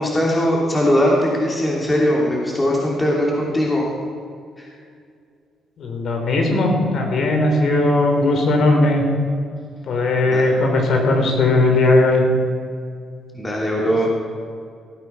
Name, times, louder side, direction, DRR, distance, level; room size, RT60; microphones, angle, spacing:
voice 1, 0.0-3.9 4.6-4.7 10.3-10.5 13.3-14.1, equal, 20° left, -3 dB, 2.9 m, -20 dB
voice 2, 5.8-9.0 9.9-12.2, left 2 dB, 65° left, 2 dB, 3.3 m, -17 dB
17.0 x 9.1 x 5.7 m, 2.2 s
cardioid pair, 90°, 0 cm